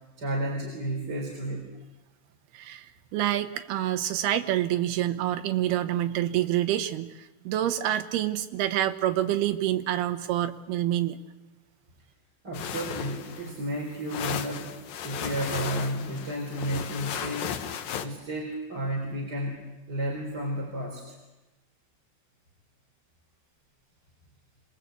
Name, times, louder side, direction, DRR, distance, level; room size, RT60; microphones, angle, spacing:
voice 1, 0.2-1.7 12.4-14.7 15.0-17.6 18.0-21.0, right 1 dB, 25° right, -1 dB, 4.0 m, -32 dB
voice 2, 2.5-2.9 3.1-7.1 7.4-11.2, right 12 dB, 75° right, 9 dB, 2.9 m, -27 dB
sound 1, 12.5-18.1, left 9 dB, 65° left, 2.5 m, -35 dB
26.0 x 20.5 x 8.2 m, 1.1 s
omnidirectional pair, 4.9 m